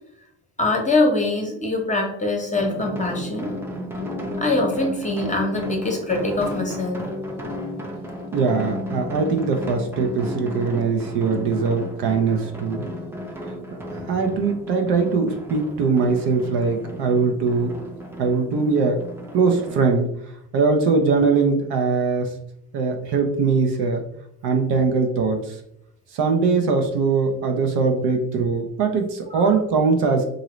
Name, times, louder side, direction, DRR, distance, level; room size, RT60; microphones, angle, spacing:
voice 1, 0.6-3.5 4.4-7.0 29.3-29.5, left 2 dB, 15° left, 1 dB, 0.9 m, -23 dB
sound 1, 2.5-19.8, left 1 dB, 5° right, 0.5 m, -33 dB
voice 2, 8.3-12.9 13.7-13.8 14.1-17.7 18.2-19.0 19.3-20.1 20.5-22.3 22.7-24.0 24.4-25.4 26.1-30.2, right 4 dB, 60° right, 4 dB, 0.7 m, -21 dB
2.8 x 2.6 x 3.0 m, 0.76 s
hypercardioid pair, 65°, 45 cm